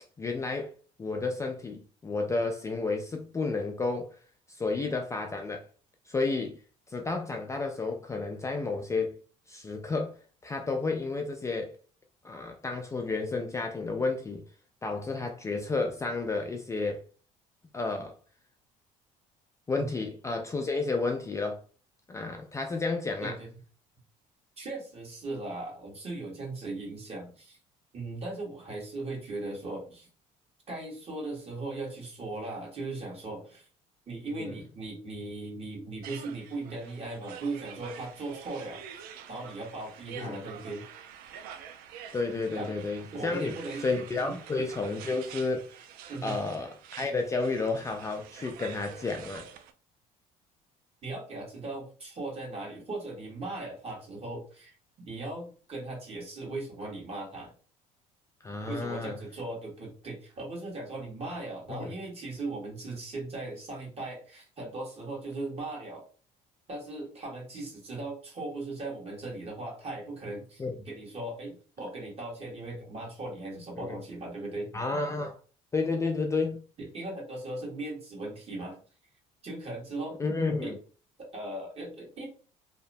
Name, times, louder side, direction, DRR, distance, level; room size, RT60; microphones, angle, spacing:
voice 1, 0.2-0.7 1.0-4.2 4.5-5.7 6.1-6.6 6.9-9.2 9.5-10.2 10.4-11.7 12.2-14.4 14.8-17.0 17.7-18.1 19.7-21.6 22.1-23.4 34.3-34.5 40.2-40.4 42.1-43.5 43.8-45.7 46.2-46.7 47.0-49.5 58.4-59.2 61.7-61.9 70.6-70.8 73.8-74.0 74.7-75.3 75.7-76.6 80.2-80.8, left 3 dB, 20° left, 0.3 m, -31 dB
voice 2, 24.6-27.6 27.9-30.1 30.7-33.7 34.1-38.8 39.3-40.8 42.5-42.7 43.1-43.8 44.2-44.4 46.1-46.4 51.0-54.7 55.0-57.5 58.7-66.1 66.7-74.7 76.8-78.8 79.4-80.2 80.6-80.7 81.2-82.3, right 2 dB, 40° right, 1.5 m, -38 dB
sound 1, 36.0-49.7, right 8 dB, 75° right, 0.4 m, -47 dB
2.7 x 2.1 x 2.6 m
supercardioid pair, 90°, 16 cm